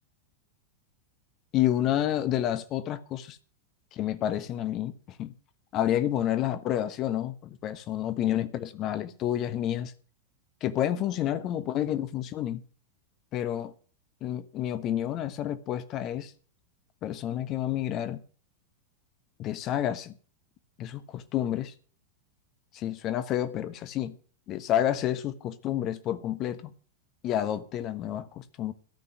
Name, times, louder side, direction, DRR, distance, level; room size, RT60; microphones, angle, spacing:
voice 1, 1.5-3.4 3.9-5.3 5.7-9.9 10.6-12.6 13.3-13.7 14.2-16.3 17.0-18.2 19.4-20.1 20.8-21.7 22.7-24.1 24.5-26.7 27.2-28.7, left 11 dB, 35° left, 1.2 m, -29 dB
13.5 x 5.8 x 9.2 m
figure-of-eight pair, 90°, 0 cm